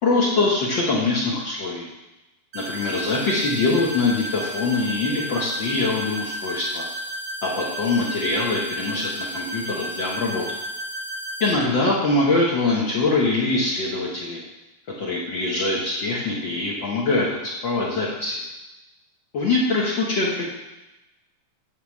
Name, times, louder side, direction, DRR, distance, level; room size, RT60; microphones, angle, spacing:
voice 1, 0.0-1.9 2.5-6.9 7.4-10.4 11.4-14.4 15.0-18.4 19.3-20.4, left 3 dB, 65° left, -4 dB, 1.1 m, -23 dB
sound 1, 2.5-11.5, right 1 dB, 80° right, 1.0 m, -33 dB
8.2 x 5.0 x 7.2 m, 1.0 s
omnidirectional pair, 3.8 m